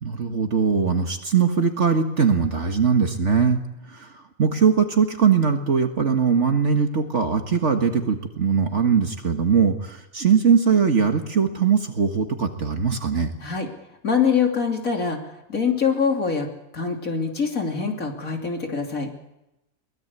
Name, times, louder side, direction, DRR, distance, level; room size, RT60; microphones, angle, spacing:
voice 1, 0.0-3.6 3.9-4.1 4.4-13.3, right 6 dB, 55° right, 5 dB, 2.0 m, -21 dB
voice 2, 14.0-15.2 15.5-16.5 16.7-19.1, left 6 dB, 70° left, 2 dB, 3.5 m, -24 dB
23.0 x 20.0 x 8.2 m, 0.91 s
omnidirectional pair, 1.5 m